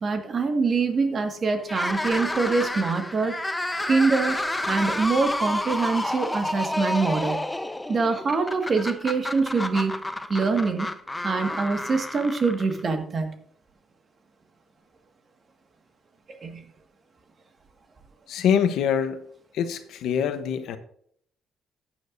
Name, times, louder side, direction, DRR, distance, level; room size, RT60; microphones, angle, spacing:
voice 1, 0.0-3.4 3.8-4.4 4.7-7.4 7.9-9.9 10.3-10.9 11.2-13.3 16.4-16.6, right 4 dB, 45° right, 5 dB, 1.8 m, -24 dB
sound 1, 1.6-12.9, left 1 dB, 10° left, 0.8 m, -30 dB
voice 2, 18.3-19.2 19.5-20.8, left 8 dB, 80° left, 10 dB, 1.0 m, -24 dB
14.5 x 9.0 x 2.7 m, 0.65 s
cardioid pair, 90°, 0 cm